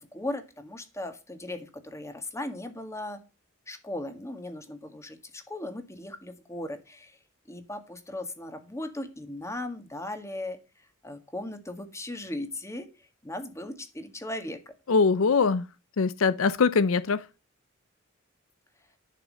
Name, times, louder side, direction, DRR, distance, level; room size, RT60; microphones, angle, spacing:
voice 1, 0.0-3.2 3.7-7.2 7.5-10.6 11.0-12.9 13.2-14.7, left 1 dB, 15° left, 1.8 m, -37 dB
voice 2, 14.9-15.6 16.0-17.2, left 4 dB, 70° left, 0.5 m, -22 dB
11.0 x 6.4 x 6.3 m
head